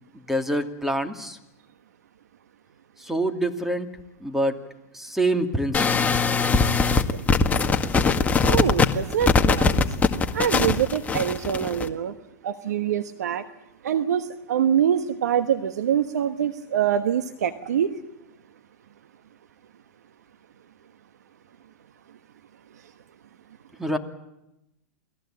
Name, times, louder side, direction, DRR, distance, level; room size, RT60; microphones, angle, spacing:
voice 1, 0.3-1.4 3.0-3.9 4.2-4.6 4.9-6.1 23.8-24.0, right 1 dB, 5° right, 5 dB, 2.6 m, -26 dB
sound 1, 5.7-11.9, left 4 dB, 15° left, 1.8 m, -21 dB
voice 2, 8.4-9.8 10.3-12.1 12.4-13.4 13.8-17.9, right 9 dB, 80° right, 9 dB, 1.3 m, -24 dB
28.5 x 19.5 x 9.1 m, 0.91 s
hypercardioid pair, 115°, 9 cm